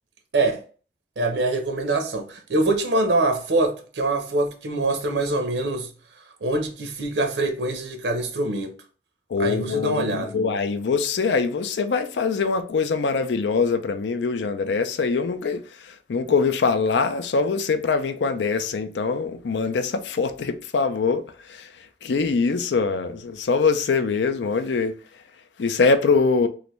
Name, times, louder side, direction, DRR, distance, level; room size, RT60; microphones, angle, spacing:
voice 1, 1.2-5.9 6.4-8.7 9.4-10.3, right 2 dB, 90° right, 0.6 m, -24 dB
voice 2, 9.3-25.2 25.6-26.5, left 4 dB, 85° left, 0.4 m, -23 dB
3.2 x 2.6 x 3.0 m
head